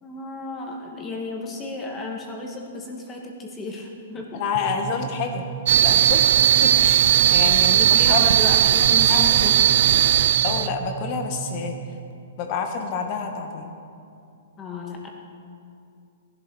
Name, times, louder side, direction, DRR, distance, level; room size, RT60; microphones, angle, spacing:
voice 1, 0.0-4.4 7.7-9.5 14.6-15.1, left 2 dB, 20° left, 0 dB, 2.2 m, -33 dB
voice 2, 4.3-5.5 5.8-6.3 6.6-8.5 9.1-9.2 10.1-11.7 12.4-13.7, left 5 dB, 40° left, 4 dB, 2.0 m, -29 dB
sound 1, 4.5-12.1, right 10 dB, 40° right, 0.9 m, -35 dB
sound 2, 5.7-10.7, right 11 dB, 60° right, 0.4 m, -17 dB
16.5 x 11.5 x 6.6 m, 2.5 s
hypercardioid pair, 145°, 0 cm